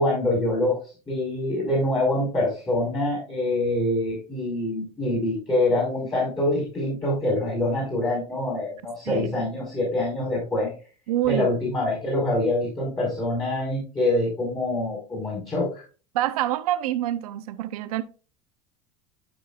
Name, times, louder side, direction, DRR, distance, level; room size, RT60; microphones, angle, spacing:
voice 1, 0.0-10.7 11.3-15.8, left 1 dB, 20° left, 4.4 m, -25 dB
voice 2, 9.1-9.5 11.1-11.5 16.1-18.0, right 13 dB, 85° right, 0.8 m, -26 dB
12.0 x 5.3 x 2.4 m
supercardioid pair, 120°, 19 cm